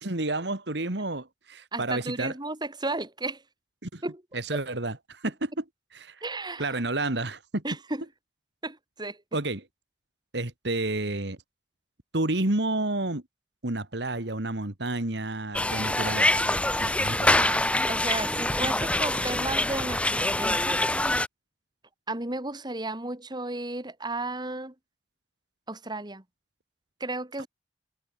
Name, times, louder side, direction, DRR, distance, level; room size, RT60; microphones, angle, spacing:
voice 1, 0.0-2.3 3.8-4.0 4.3-5.6 5.9-6.2 6.6-7.6 9.3-9.7 10.3-11.4 12.1-13.2 13.6-17.4, right 2 dB, 65° right, 2.3 m, -30 dB
voice 2, 1.7-3.4 4.0-4.2 6.2-6.8 7.6-8.0 8.6-9.2 17.3-20.8 22.1-24.7 25.7-26.2 27.0-27.5, right 2 dB, 25° right, 2.9 m, -34 dB
sound 1, 15.5-21.3, left 1 dB, 5° left, 1.1 m, -25 dB
head